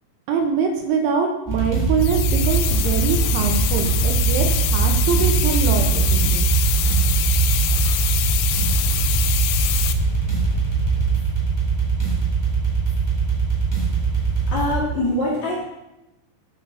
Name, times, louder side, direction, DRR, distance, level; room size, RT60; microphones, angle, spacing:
voice 1, 0.3-6.5, right 5 dB, 75° right, 4 dB, 3.1 m, -24 dB
sound 1, 1.5-14.8, right 5 dB, 5° left, 2.7 m, -21 dB
sound 2, 2.0-9.9, left 13 dB, 80° left, 2.8 m, -25 dB
voice 2, 14.5-15.6, left 1 dB, 45° left, -5 dB, 2.6 m, -23 dB
9.3 x 9.1 x 6.4 m, 0.97 s
omnidirectional pair, 5.9 m